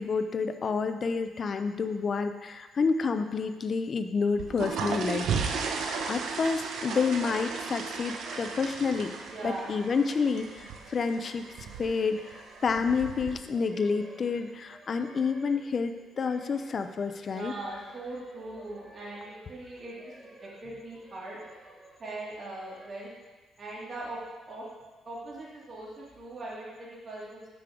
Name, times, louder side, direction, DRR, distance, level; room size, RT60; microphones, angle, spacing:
voice 1, 0.0-9.1 9.4-11.5 11.8-17.5, left 5 dB, 45° left, 8 dB, 0.5 m, -29 dB
sound 1, 4.3-13.3, right 5 dB, 75° right, 0.8 m, -35 dB
voice 2, 5.0-5.4 9.3-9.7 17.3-20.1 20.4-21.4 22.0-23.1 23.6-24.2 24.5-24.7 25.0-27.4, right 2 dB, 45° right, -6 dB, 2.4 m, -40 dB
sound 2, 7.2-22.9, right 1 dB, 20° right, 1.3 m, -52 dB
6.2 x 6.0 x 4.9 m, 1.2 s
cardioid pair, 90°, 0 cm